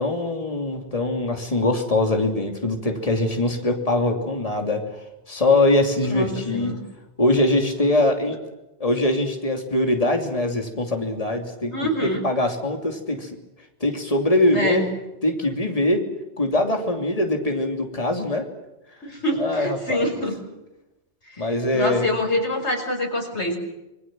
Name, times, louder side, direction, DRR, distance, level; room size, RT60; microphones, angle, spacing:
voice 1, 0.0-4.8 5.3-6.7 7.2-8.4 8.8-13.3 13.8-14.8 15.2-16.0 16.4-18.4 19.4-20.1 21.4-22.1, left 2 dB, 35° left, 3 dB, 3.1 m, -22 dB
voice 2, 6.0-6.8 11.7-12.2 14.5-14.9 19.0-20.4 21.7-23.6, equal, 90° left, 4 dB, 5.5 m, -25 dB
27.0 x 23.0 x 7.7 m, 0.96 s
omnidirectional pair, 1.1 m